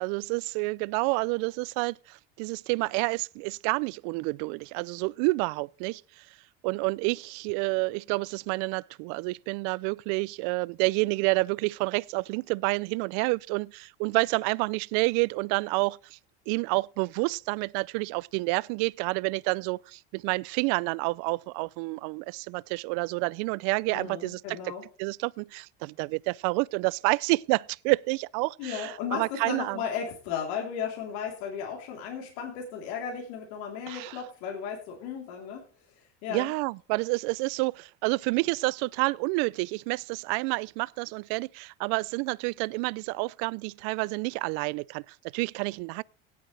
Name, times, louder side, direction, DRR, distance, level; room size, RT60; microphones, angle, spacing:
voice 1, 0.0-6.3 6.6-16.2 16.5-24.6 25.0-29.8 33.9-34.2 36.3-46.0, right 26 dB, 70° right, 0.5 m, -29 dB
voice 2, 23.9-24.8 28.6-35.6 35.9-36.5, left 7 dB, 75° left, 3.6 m, -35 dB
17.0 x 8.7 x 3.3 m
supercardioid pair, 105°, 32 cm